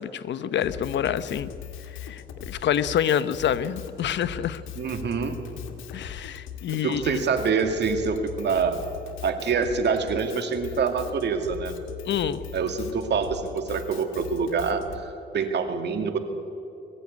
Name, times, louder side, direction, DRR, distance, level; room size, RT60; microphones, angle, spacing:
voice 1, 0.0-1.5 2.0-4.6 5.9-7.2 12.1-12.4, left 9 dB, 65° left, 13 dB, 0.9 m, -27 dB
Drum kit, 0.6-15.0, left 9 dB, 85° left, 1.8 m, -40 dB
voice 2, 4.8-5.4 6.7-8.8 9.2-11.7 12.5-16.2, right 5 dB, 60° right, 6 dB, 2.3 m, -26 dB
22.0 x 15.0 x 9.6 m, 2.9 s
cardioid pair, 90°, 20 cm